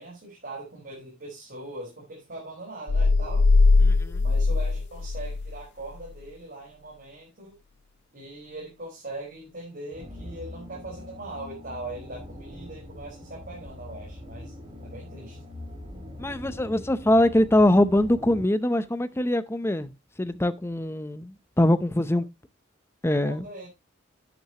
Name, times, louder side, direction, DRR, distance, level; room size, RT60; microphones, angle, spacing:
voice 1, 0.0-3.4 4.2-7.5 8.1-14.5 14.8-15.4 23.2-23.7, right 2 dB, 50° right, 4.6 m, -40 dB
sound 1, 2.9-5.6, left 3 dB, 55° left, 0.5 m, -20 dB
voice 2, 3.8-4.2 16.2-19.9 20.2-22.3 23.0-23.5, left 1 dB, 10° left, 0.6 m, -23 dB
sound 2, 9.9-18.4, left 1 dB, 25° right, 3.7 m, -42 dB
11.5 x 9.0 x 2.9 m
head